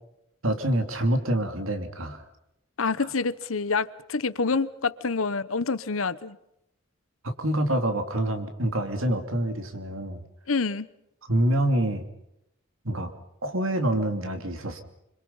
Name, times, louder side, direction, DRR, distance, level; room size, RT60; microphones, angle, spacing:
voice 1, 0.4-2.2 7.2-10.2 11.3-12.0 12.8-13.1 13.4-14.8, right 1 dB, 85° right, 3.0 m, -26 dB
voice 2, 2.8-6.4 10.5-10.9, left 4 dB, 85° left, 1.1 m, -27 dB
27.0 x 25.5 x 5.6 m
head